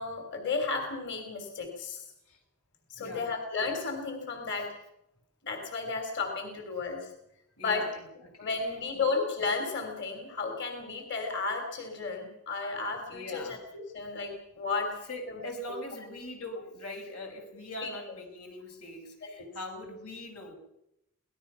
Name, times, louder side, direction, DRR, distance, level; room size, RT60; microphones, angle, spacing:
voice 1, 0.0-2.0 2.9-4.7 5.4-7.1 7.6-7.8 8.4-15.0 17.8-18.0 19.4-19.5, left 4 dB, 55° left, 4 dB, 3.4 m, -33 dB
voice 2, 7.6-8.5 8.9-9.0 13.1-13.6 15.1-20.5, left 1 dB, 90° left, 3 dB, 5.7 m, -42 dB
25.0 x 18.5 x 5.7 m, 0.82 s
head